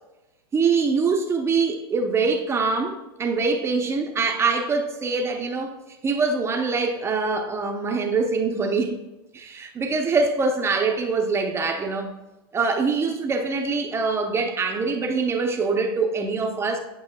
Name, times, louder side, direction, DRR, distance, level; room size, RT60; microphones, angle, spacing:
voice 1, 0.5-5.7 6.0-9.0 9.3-12.1 12.5-16.8, right 4 dB, 20° right, 0.6 m, -24 dB
9.5 x 5.4 x 2.2 m
hypercardioid pair, 115°, 13 cm